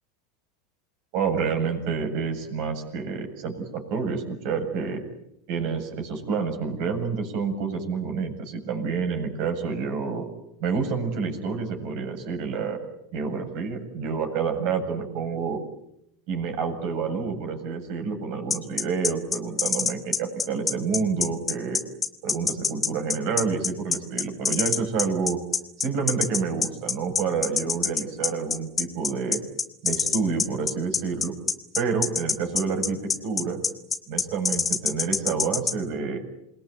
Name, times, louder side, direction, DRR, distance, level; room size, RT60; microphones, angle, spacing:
voice 1, 1.1-5.0 5.5-10.3 10.6-12.8 13.1-15.6 16.3-21.8 22.2-25.4 25.8-29.4 29.8-31.3 31.7-33.6 34.1-36.2, right 5 dB, 60° right, 5 dB, 7.7 m, -28 dB
sound 1, 18.5-35.7, left 6 dB, 25° left, 2.8 m, -25 dB
28.0 x 21.0 x 9.3 m, 0.77 s
hypercardioid pair, 90°, 0 cm